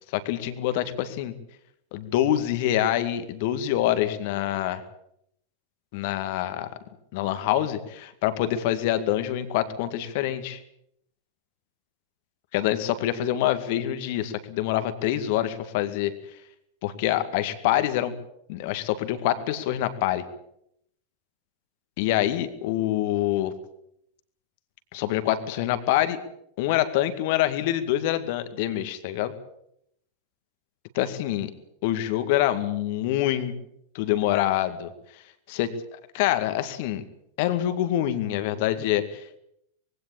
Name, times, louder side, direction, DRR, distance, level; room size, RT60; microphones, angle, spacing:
voice 1, 0.1-1.3 1.9-4.8 5.9-6.7 7.1-10.6 12.5-16.1 16.8-18.1 18.5-20.2 22.0-23.5 24.9-26.2 26.6-29.3 30.9-31.5 31.8-33.5 33.9-34.9 35.5-37.0 37.4-39.4, left 12 dB, 50° left, 11 dB, 2.0 m, -26 dB
21.5 x 16.5 x 8.8 m, 0.75 s
figure-of-eight pair, 90°, 0 cm